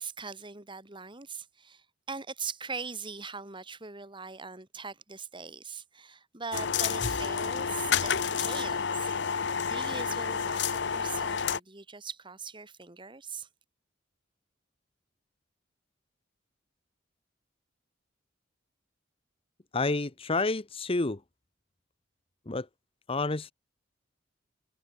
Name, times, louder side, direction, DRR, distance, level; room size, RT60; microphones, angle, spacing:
voice 1, 0.0-8.1 8.4-9.2 9.7-13.5, right 5 dB, 25° right, 2.5 m, -41 dB
sound 1, 6.5-11.6, left 6 dB, 60° left, 0.8 m, -30 dB
voice 2, 19.7-21.2 22.5-22.7 23.1-23.5, left 3 dB, 30° left, 1.0 m, -29 dB
head